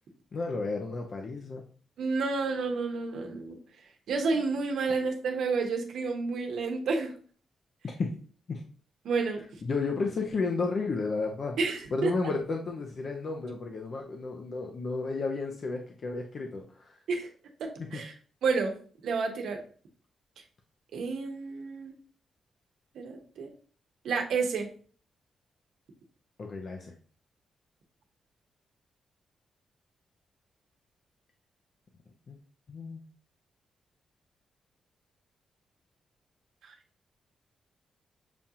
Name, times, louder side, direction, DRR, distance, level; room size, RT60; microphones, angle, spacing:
voice 1, 0.3-1.6 4.9-5.0 7.8-8.1 8.5-8.6 9.6-11.6 11.9-17.0 17.8-18.0 26.4-26.9 32.3-32.4 32.7-33.0, left 3 dB, 55° left, 2 dB, 0.6 m, -32 dB
voice 2, 2.0-3.6 4.1-7.1 9.0-9.4 11.6-12.1 17.1-17.3 17.6-18.1 18.4-18.8 19.0-19.6 20.9-21.9 22.9-23.5 24.0-24.7 36.6-36.7, right 4 dB, 80° right, 3 dB, 0.9 m, -30 dB
7.0 x 2.4 x 2.8 m, 0.43 s
cardioid pair, 90°, 0 cm